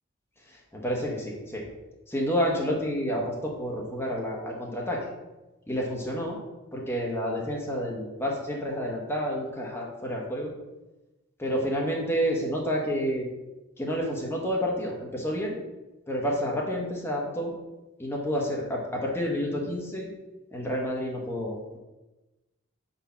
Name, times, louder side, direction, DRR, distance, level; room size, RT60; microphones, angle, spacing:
voice 1, 0.7-1.6 2.1-5.0 5.7-6.4 6.7-10.5 11.4-13.3 13.8-15.6 16.1-17.5 18.0-20.1 20.5-21.6, equal, 10° left, -2 dB, 1.1 m, -29 dB
4.4 x 4.2 x 5.8 m, 1.1 s
head